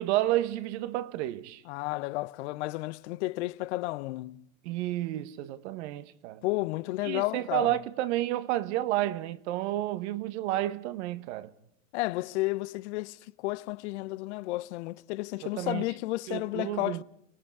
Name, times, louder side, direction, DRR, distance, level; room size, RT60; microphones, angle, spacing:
voice 1, 0.0-1.6 4.6-6.4 7.0-11.5 15.4-15.9 16.3-17.0, right 14 dB, 55° right, 1.4 m, -31 dB
voice 2, 1.7-4.5 6.4-7.8 11.9-17.0, left 20 dB, 55° left, 0.8 m, -32 dB
30.0 x 18.5 x 4.8 m
hypercardioid pair, 125°, 41 cm